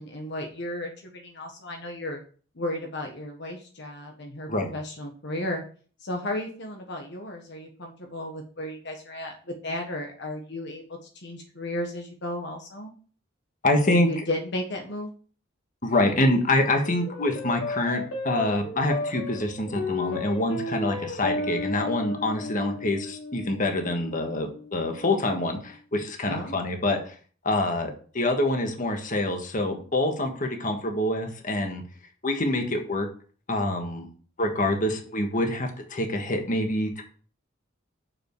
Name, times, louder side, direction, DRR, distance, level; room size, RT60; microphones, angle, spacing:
voice 1, 0.0-2.2 2.5-5.6 6.0-9.3 9.6-12.9 13.9-15.1 26.2-26.7, left 1 dB, 60° left, 2 dB, 1.3 m, -34 dB
voice 2, 13.6-14.2 15.8-27.1 27.4-31.8 32.2-33.1 33.5-34.1 34.4-37.0, left 1 dB, 40° left, 4 dB, 1.5 m, -26 dB
sound 1, 16.9-25.5, left 3 dB, 85° left, 2.9 m, -34 dB
7.1 x 6.4 x 4.6 m, 0.42 s
head